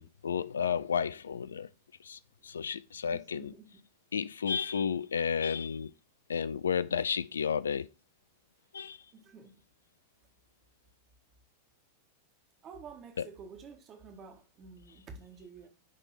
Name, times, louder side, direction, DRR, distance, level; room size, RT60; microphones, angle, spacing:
voice 1, 0.0-1.7 2.0-3.5 4.1-5.9 6.3-7.9 8.7-9.0 13.2-13.3, left 7 dB, 70° left, 0.3 m, -32 dB
voice 2, 3.1-3.8 9.1-9.6 12.6-15.7, right 5 dB, 30° right, 1.6 m, -50 dB
9.7 x 3.5 x 4.4 m
figure-of-eight pair, 90°, 0 cm